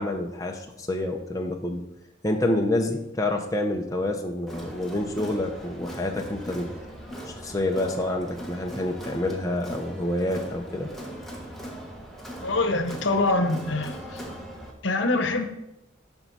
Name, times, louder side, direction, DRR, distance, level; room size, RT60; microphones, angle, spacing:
voice 1, 0.0-1.9 2.2-6.7 7.2-10.9, left 1 dB, 15° left, 2 dB, 0.6 m, -28 dB
Crowd, 4.5-14.7, equal, ahead, 1.2 m, -39 dB
voice 2, 12.4-14.2 14.8-15.5, left 2 dB, 70° left, 6 dB, 1.0 m, -24 dB
12.0 x 4.5 x 4.1 m, 0.87 s
head